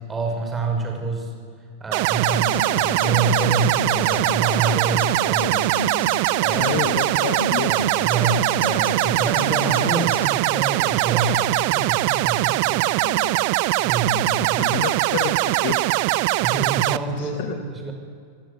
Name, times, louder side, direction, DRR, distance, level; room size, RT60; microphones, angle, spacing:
voice 1, 0.1-1.3 1.8-5.7 6.1-6.8 7.6-12.9 13.8-14.7 16.4-17.9, right 3 dB, 15° right, 2 dB, 6.0 m, -27 dB
sound 1, 1.9-17.0, right 19 dB, 45° right, 0.8 m, -21 dB
Human voice / Acoustic guitar, 2.3-10.3, left 2 dB, 80° left, 1.7 m, -32 dB
voice 2, 6.5-7.7 13.0-13.6 14.3-15.8 17.1-17.6, left 9 dB, 50° left, 7 dB, 1.8 m, -30 dB
26.0 x 20.0 x 9.6 m, 2.1 s
figure-of-eight pair, 90°, 0 cm